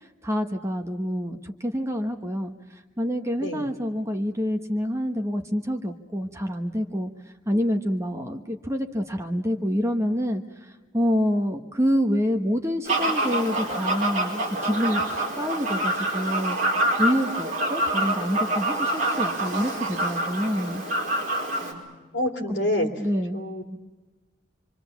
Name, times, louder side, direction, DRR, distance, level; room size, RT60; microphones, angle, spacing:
voice 1, 0.2-2.5 3.0-7.1 7.5-10.4 10.9-16.6 17.0-20.8 22.5-22.6 23.0-23.4, equal, 15° right, 5 dB, 1.2 m, -27 dB
voice 2, 3.4-3.8 21.6-22.9 23.3-23.6, left 1 dB, 55° left, 4 dB, 3.2 m, -28 dB
Fowl, 12.9-21.7, right 1 dB, 40° right, 5.1 m, -26 dB
27.0 x 25.0 x 7.2 m, 1.2 s
head